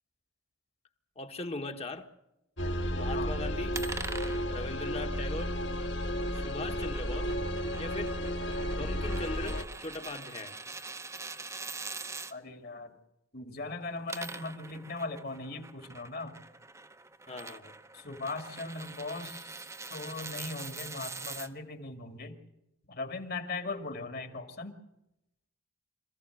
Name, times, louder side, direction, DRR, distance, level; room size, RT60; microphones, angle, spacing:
voice 1, 1.2-2.1 2.9-3.8 4.5-5.5 6.3-7.3 7.8-8.1 8.7-10.6 17.3-17.7, left 2 dB, 30° left, 6 dB, 1.5 m, -39 dB
sound 1, 2.6-9.6, equal, 65° left, 2.1 m, -33 dB
sound 2, 3.7-12.3 13.8-21.5, right 4 dB, 15° right, 0.9 m, -44 dB
voice 2, 12.3-13.0 13.3-16.4 17.9-19.6 19.9-22.4 22.9-24.7, left 3 dB, 50° left, 7 dB, 2.4 m, -39 dB
26.5 x 15.5 x 7.9 m, 0.89 s
head